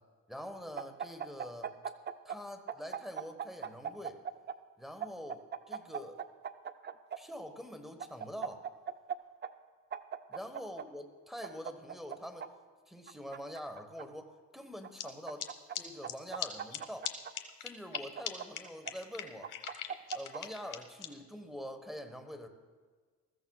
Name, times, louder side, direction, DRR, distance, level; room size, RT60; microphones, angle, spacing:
voice 1, 0.3-1.7 2.2-4.2 4.8-6.2 7.2-8.7 10.3-12.5 12.9-15.5 15.8-17.1 17.6-19.6 20.1-22.5, equal, ahead, 5 dB, 1.3 m, -45 dB
sound 1, 0.8-2.4 2.7-4.6 5.0-7.2 8.0-9.2 9.4-9.5 9.9-10.9 11.4-12.5 13.1-14.0 14.8-15.8 16.0-17.3 17.9-18.9 19.4-20.4, right 8 dB, 35° right, 0.6 m, -39 dB
sound 2, 15.0-15.1 15.4-15.5 15.8-15.9 16.1-16.2 16.4-16.5 16.7-16.8 17.1-17.2 17.3-18.0 18.3-18.4 18.6-18.7 18.9-21.1, left 12 dB, 85° left, 1.0 m, -38 dB
20.5 x 14.0 x 2.4 m, 1.5 s
cardioid pair, 90°, 30 cm